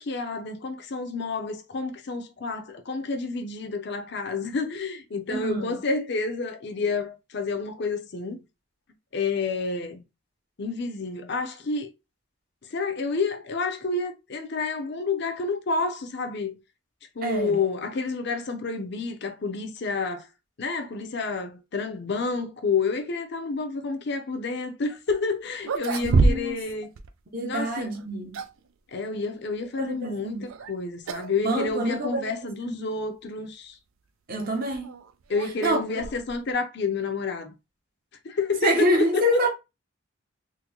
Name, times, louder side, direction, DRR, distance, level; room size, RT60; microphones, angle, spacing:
voice 1, 0.0-8.4 9.1-10.0 10.6-11.9 12.7-16.5 17.2-20.3 20.6-26.9 27.4-27.9 28.9-33.8 35.3-37.5 38.2-39.5, left 4 dB, 55° left, 0.6 m, -29 dB
voice 2, 5.3-5.8 17.2-17.6 26.0-26.6 27.3-28.4 29.8-30.5 31.4-32.8 34.3-35.0 35.6-35.8 38.6-39.5, right 1 dB, 45° right, 0.8 m, -27 dB
sound 1, 25.1-25.2 25.6-26.7 27.0-27.1 27.9-28.7 30.5-30.7 31.1-31.4 31.7-31.8 32.5-32.6 34.4-36.5, right 3 dB, 80° right, 0.4 m, -26 dB
3.7 x 2.1 x 3.0 m
head